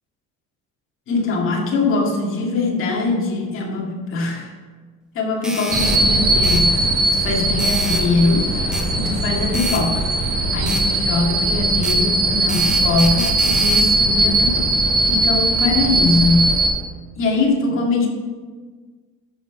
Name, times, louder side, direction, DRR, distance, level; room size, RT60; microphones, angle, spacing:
voice 1, 1.1-4.5 5.1-8.5 8.9-10.0 10.3-14.7 15.0-16.6 17.2-18.1, left 3 dB, 45° left, -1 dB, 2.2 m, -22 dB
sound 1, 5.4-6.0 6.4-6.6 7.6-8.0 8.7-8.9 9.5-9.8 10.7-10.8 11.8-12.0 12.5-13.9, equal, ahead, 0.8 m, -29 dB
sound 2, 5.7-16.7, right 2 dB, 35° right, 2.8 m, -19 dB
13.5 x 5.6 x 4.8 m, 1.4 s
cardioid pair, 165°, 29 cm